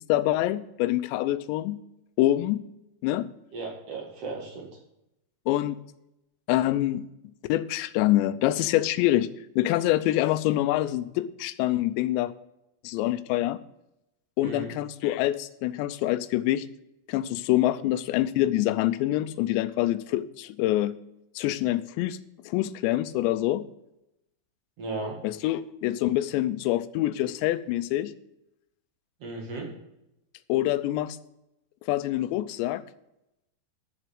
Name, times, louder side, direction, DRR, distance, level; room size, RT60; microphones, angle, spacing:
voice 1, 0.1-1.8 2.2-2.6 3.0-3.3 5.5-5.8 6.5-7.0 7.5-9.3 9.6-12.3 12.8-13.6 14.4-16.7 17.1-20.9 21.4-22.2 22.5-23.6 25.2-28.1 30.5-31.2 31.9-32.8, left 15 dB, 90° left, 13 dB, 2.9 m, -25 dB
voice 2, 3.5-4.7 14.4-14.7 24.8-25.2 29.2-29.7, right 3 dB, 45° right, 0 dB, 2.2 m, -35 dB
11.0 x 7.3 x 5.0 m, 0.86 s
omnidirectional pair, 5.0 m